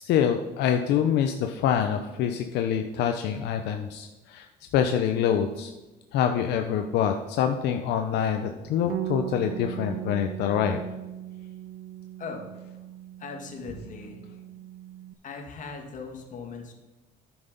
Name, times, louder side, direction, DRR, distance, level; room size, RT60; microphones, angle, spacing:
voice 1, 0.0-4.5 4.7-5.7 6.1-10.8, left 8 dB, 80° left, 6 dB, 0.7 m, -25 dB
Bass guitar, 8.9-15.1, right 14 dB, 65° right, 0.4 m, -38 dB
voice 2, 12.2-12.6 13.2-14.2 15.2-16.7, left 4 dB, 50° left, 3 dB, 1.8 m, -39 dB
9.4 x 6.2 x 5.2 m, 1.1 s
cardioid pair, 110°, 17 cm